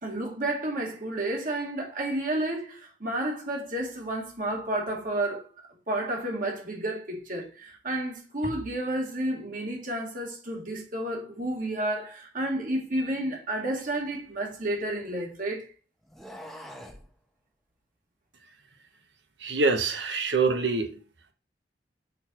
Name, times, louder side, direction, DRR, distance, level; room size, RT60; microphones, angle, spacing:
voice 1, 0.0-5.5 5.9-15.6, right 1 dB, 50° right, 2.2 m, -31 dB
sound 1, 13.8-15.3 16.0-17.1, equal, ahead, 0.8 m, -46 dB
voice 2, 19.4-20.9, right 4 dB, 80° right, 1.2 m, -25 dB
6.6 x 4.4 x 4.5 m
head